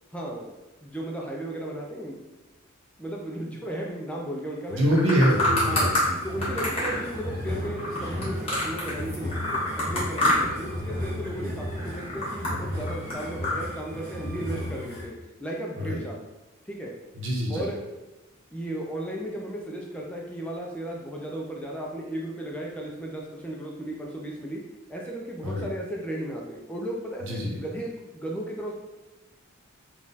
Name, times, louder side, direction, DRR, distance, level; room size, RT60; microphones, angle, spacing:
voice 1, 0.1-0.5 0.8-2.2 3.0-4.8 5.7-5.9 6.2-15.1 15.4-16.2 16.7-16.9 17.5-17.8 18.5-24.6 24.9-28.7, right 1 dB, 5° left, -2 dB, 0.4 m, -35 dB
sound 1, 4.7-6.0 6.4-9.0 9.3-10.7 10.9-11.4 11.8-13.6, left 1 dB, 25° left, 1.4 m, -27 dB
voice 2, 4.7-6.2 11.4-11.5 15.8-16.0 17.1-17.6 25.4-25.6 27.3-27.6, equal, 60° right, -2 dB, 1.0 m, -25 dB
sound 2, 5.1-15.0, left 1 dB, 15° right, 1.2 m, -35 dB
4.0 x 2.4 x 3.9 m, 1.1 s
head